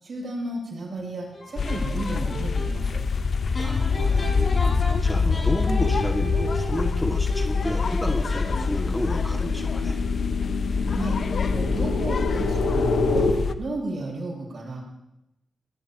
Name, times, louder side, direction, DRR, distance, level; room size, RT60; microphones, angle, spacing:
voice 1, 0.0-3.0 10.9-11.2 11.5-13.3 13.6-14.8, right 2 dB, 65° right, -1 dB, 7.1 m, -33 dB
sound 1, 1.3-2.7 3.5-9.0, equal, 45° left, 6.0 m, -35 dB
sound 2, 1.6-13.5, left 4 dB, 65° left, 0.8 m, -25 dB
voice 2, 3.6-10.0, left 1 dB, 15° left, 2 dB, 2.3 m, -31 dB
sound 3, 5.0-13.3, left 3 dB, 90° left, 1.6 m, -30 dB
22.0 x 18.5 x 3.1 m, 0.87 s
supercardioid pair, 45°, 0 cm